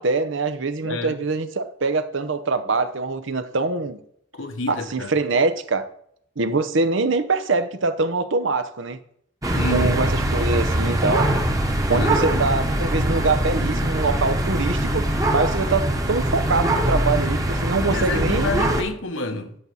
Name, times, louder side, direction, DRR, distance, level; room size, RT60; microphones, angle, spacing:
voice 1, 0.0-4.0 4.7-5.9 6.4-9.0 9.7-11.3 11.9-15.0 15.3-18.6, right 3 dB, 70° right, 0.8 m, -24 dB
voice 2, 0.8-1.2 4.3-5.1 9.5-10.0 11.8-12.5 17.9-19.6, left 3 dB, 75° left, 1.2 m, -29 dB
sound 1, 9.4-18.8, right 1 dB, 15° right, 1.1 m, -22 dB
11.0 x 4.0 x 7.2 m
head